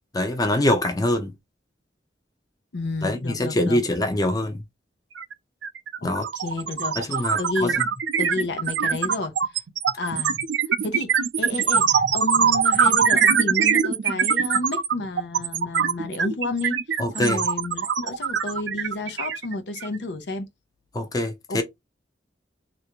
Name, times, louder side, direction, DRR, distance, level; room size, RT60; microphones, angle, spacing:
voice 1, 0.1-1.3 3.0-4.6 6.0-6.2 7.0-7.7 17.0-17.4 20.9-21.6, left 1 dB, 20° left, 0.6 m, -24 dB
voice 2, 2.7-3.8 6.0-7.0 7.4-7.8 8.2-9.6 10.0-10.4 10.8-16.8 17.1-20.5 21.5-21.6, left 2 dB, 70° left, 0.6 m, -31 dB
sound 1, 5.2-5.3 5.6-20.0, right 6 dB, 85° right, 0.5 m, -22 dB
3.3 x 2.5 x 2.9 m
head